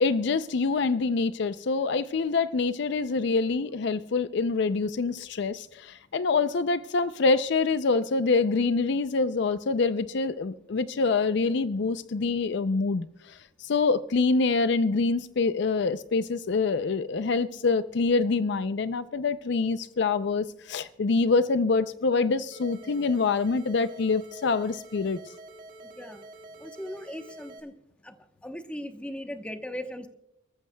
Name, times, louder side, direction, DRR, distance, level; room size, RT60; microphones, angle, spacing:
voice 1, 0.0-13.1 13.6-25.2, left 4 dB, 65° left, 0.5 m, -25 dB
sound 1, 22.5-27.6, right 2 dB, 45° right, 1.9 m, -47 dB
voice 2, 26.6-27.7 28.0-28.2 28.4-30.1, equal, 5° left, 0.9 m, -38 dB
29.0 x 13.5 x 2.2 m
head